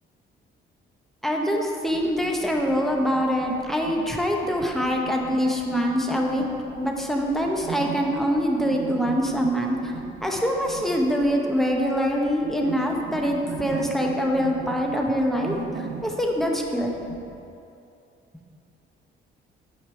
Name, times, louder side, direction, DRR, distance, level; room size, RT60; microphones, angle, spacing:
voice 1, 1.2-6.4 6.8-16.9, equal, ahead, 0 dB, 0.9 m, -24 dB
sound 1, 1.9-17.4, right 6 dB, 60° right, 0.6 m, -39 dB
6.4 x 5.4 x 4.5 m, 2.7 s
cardioid pair, 90°, 20 cm